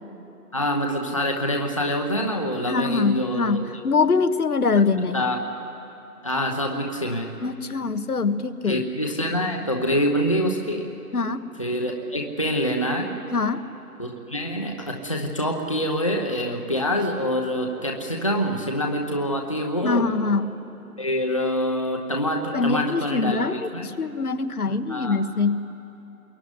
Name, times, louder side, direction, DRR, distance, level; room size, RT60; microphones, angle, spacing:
voice 1, 0.5-3.6 5.1-5.4 6.2-7.3 8.7-10.9 11.6-13.2 14.0-20.0 21.0-23.4 23.7-23.9 24.7-25.2, equal, 20° left, 1 dB, 0.9 m, -25 dB
voice 2, 2.7-5.2 7.4-8.8 11.1-11.4 13.3-13.6 19.8-20.5 22.5-25.7, left 4 dB, 70° left, 9 dB, 1.5 m, -23 dB
25.5 x 22.0 x 9.8 m, 2.8 s
hypercardioid pair, 175°, 46 cm